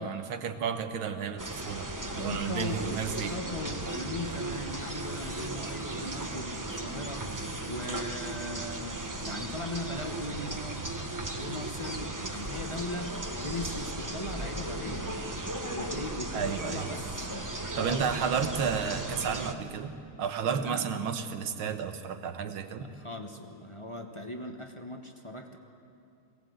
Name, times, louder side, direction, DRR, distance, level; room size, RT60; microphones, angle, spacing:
voice 1, 0.0-1.9 2.2-3.3 16.3-16.9 17.8-19.9 20.2-22.9, right 7 dB, 85° right, 8 dB, 2.0 m, -32 dB
sound 1, 1.4-19.5, right 2 dB, 20° right, 0.6 m, -36 dB
voice 2, 2.0-7.3 7.7-10.9 11.4-15.2 15.7-18.1 20.6-21.0 22.8-25.6, left 1 dB, 25° left, 4 dB, 0.8 m, -39 dB
22.5 x 18.0 x 7.9 m, 2.6 s
omnidirectional pair, 2.2 m